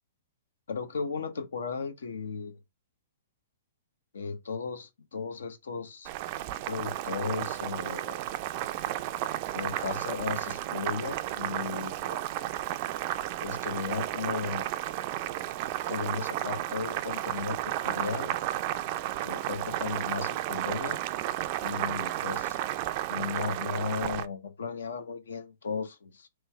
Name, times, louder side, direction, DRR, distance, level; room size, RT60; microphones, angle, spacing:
voice 1, 0.7-2.6 4.1-6.1 6.7-8.2 9.5-12.2 13.4-14.7 15.9-17.6 17.8-18.4 19.2-21.0 21.6-22.6 23.1-26.3, left 5 dB, 80° left, 0.7 m, -35 dB
Boiling, 6.0-24.3, right 14 dB, 45° right, 0.3 m, -33 dB
3.2 x 3.1 x 3.4 m
hypercardioid pair, 130°, 0 cm